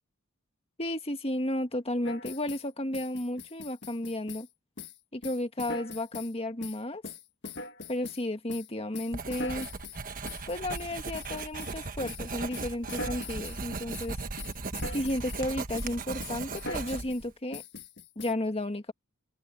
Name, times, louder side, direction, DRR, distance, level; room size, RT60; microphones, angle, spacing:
voice 1, 0.8-4.5 5.1-7.0 7.9-9.7 10.5-14.2 14.9-17.6 18.1-18.9, left 1 dB, 30° left, 1.6 m, -33 dB
sound 1, 2.0-2.7 2.9-4.5 4.8-5.0 5.2-6.3 6.6-8.2 8.5-11.8 12.1-12.3 12.5-13.6 13.9-14.1 14.4-15.5 15.8-15.9 16.2-17.2 17.5-18.3, left 3 dB, 55° left, 1.6 m, -42 dB
Writing, 9.1-17.3, right 3 dB, 40° right, 1.3 m, -37 dB
open air
head